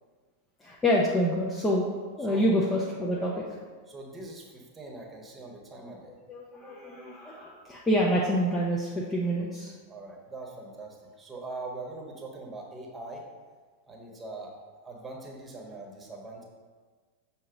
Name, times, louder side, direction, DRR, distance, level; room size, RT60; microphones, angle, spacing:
voice 1, 0.6-1.9 2.2-3.4 6.3-9.7, equal, 15° left, -4 dB, 0.7 m, -27 dB
voice 2, 2.2-2.5 3.3-3.5 3.9-6.2 9.9-13.2 13.9-14.5 14.8-16.4, right 2 dB, 15° right, 0 dB, 1.2 m, -42 dB
6.5 x 2.9 x 5.0 m, 1.5 s
figure-of-eight pair, 90°, 0 cm